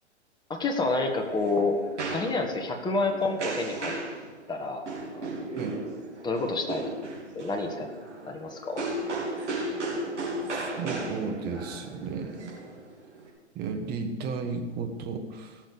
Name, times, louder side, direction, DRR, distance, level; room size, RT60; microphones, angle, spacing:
voice 1, 0.5-1.8 2.1-4.0 4.5-4.9 5.2-5.3 6.2-6.8 7.3-7.9 8.2-8.8, left 3 dB, 10° left, 3 dB, 1.7 m, -28 dB
sound 1, 0.8-13.3, right 2 dB, 80° right, 3.9 m, -36 dB
voice 2, 10.6-12.5 13.5-15.6, right 4 dB, 30° right, 4 dB, 1.7 m, -34 dB
17.5 x 6.8 x 6.7 m, 1.3 s
figure-of-eight pair, 115°, 35 cm